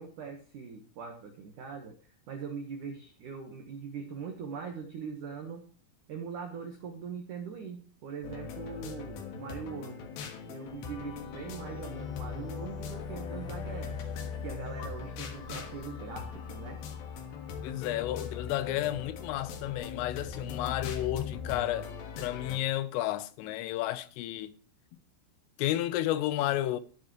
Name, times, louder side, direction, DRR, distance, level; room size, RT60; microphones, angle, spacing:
voice 1, 0.0-2.0 2.3-5.7 6.1-10.1 10.5-14.0 14.4-16.8, right 6 dB, 85° right, 1.8 m, -41 dB
sound 1, 8.2-22.6, left 6 dB, 60° left, 2.8 m, -40 dB
voice 2, 17.6-21.9 22.2-24.5 25.6-26.8, left 14 dB, 85° left, 3.4 m, -32 dB
14.5 x 10.5 x 3.1 m
omnidirectional pair, 5.7 m